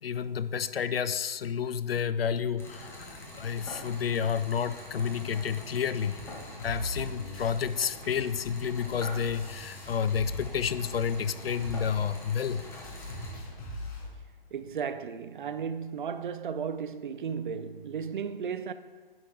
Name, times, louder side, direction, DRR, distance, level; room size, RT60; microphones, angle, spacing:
voice 1, 0.0-6.2 6.6-12.7, left 7 dB, 85° left, 0.5 m, -30 dB
sound 1, 2.6-13.3, left 1 dB, 10° left, 1.2 m, -45 dB
voice 2, 5.2-5.7 7.5-7.6 14.5-18.7, right 6 dB, 60° right, 0.6 m, -35 dB
sound 2, 6.1-10.6 10.8-14.1, left 1 dB, 35° left, 1.8 m, -42 dB
10.0 x 5.3 x 3.7 m
figure-of-eight pair, 135°, 29 cm